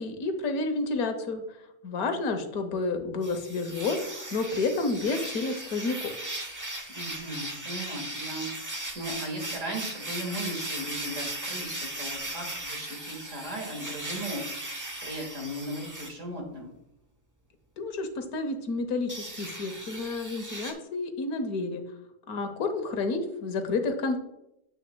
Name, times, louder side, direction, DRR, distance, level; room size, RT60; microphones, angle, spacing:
voice 1, 0.0-1.4 1.8-6.1 17.8-21.8 22.3-24.2, left 3 dB, 85° left, 7 dB, 1.4 m, -30 dB
sound 1, 3.2-16.1 19.1-20.7, right 1 dB, 15° right, 0.7 m, -37 dB
voice 2, 6.9-8.5 8.9-14.7 15.0-16.7, right 1 dB, 60° right, 1 dB, 2.1 m, -37 dB
9.3 x 7.9 x 2.2 m, 0.83 s
omnidirectional pair, 1.5 m